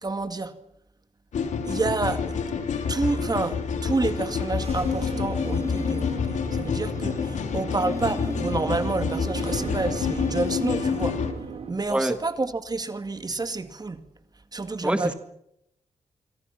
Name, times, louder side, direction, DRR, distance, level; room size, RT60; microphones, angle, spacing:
voice 1, 0.0-0.5 1.7-2.3 2.9-11.2 11.7-14.0 14.5-15.1, right 3 dB, 35° right, 2.1 m, -29 dB
sound 1, 1.3-11.3, left 6 dB, 90° left, 3.1 m, -28 dB
sound 2, 3.7-11.2, left 2 dB, 25° left, 2.0 m, -38 dB
sound 3, 4.6-11.7, right 5 dB, 60° right, 3.9 m, -37 dB
voice 2, 14.8-15.1, right 1 dB, 10° right, 1.8 m, -25 dB
26.5 x 24.5 x 5.9 m
cardioid pair, 70°, 12 cm